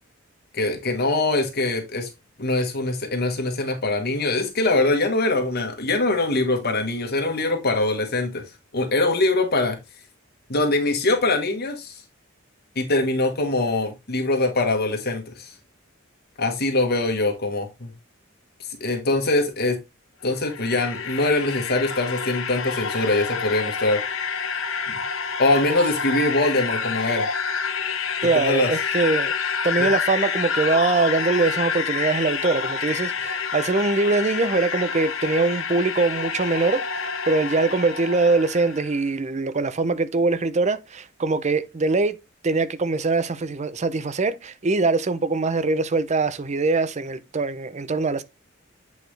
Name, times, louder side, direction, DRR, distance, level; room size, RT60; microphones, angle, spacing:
voice 1, 0.5-2.1 2.4-8.4 8.7-9.8 10.5-12.0 12.7-15.5 16.4-17.9 18.8-19.8 20.2-24.0 24.9-25.0 25.4-27.3 28.3-28.7 29.8-29.9, left 2 dB, 50° left, 1.3 m, -23 dB
sound 1, 20.2-38.9, left 6 dB, 70° left, 1.1 m, -28 dB
voice 2, 28.2-29.3 29.6-48.2, right 3 dB, 35° right, 0.6 m, -23 dB
8.3 x 4.6 x 3.3 m
head